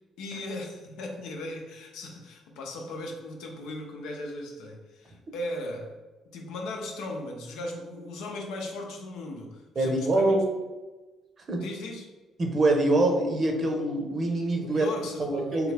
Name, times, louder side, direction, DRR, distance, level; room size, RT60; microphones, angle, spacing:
voice 1, 0.2-6.0 6.3-10.3 11.6-12.1 14.6-15.7, left 1 dB, 85° left, 1 dB, 0.6 m, -37 dB
voice 2, 9.8-10.4 11.5-11.6 12.4-14.9 15.2-15.7, right 2 dB, 45° right, 2 dB, 0.8 m, -24 dB
3.3 x 2.3 x 3.3 m, 1.2 s
supercardioid pair, 70°, 0 cm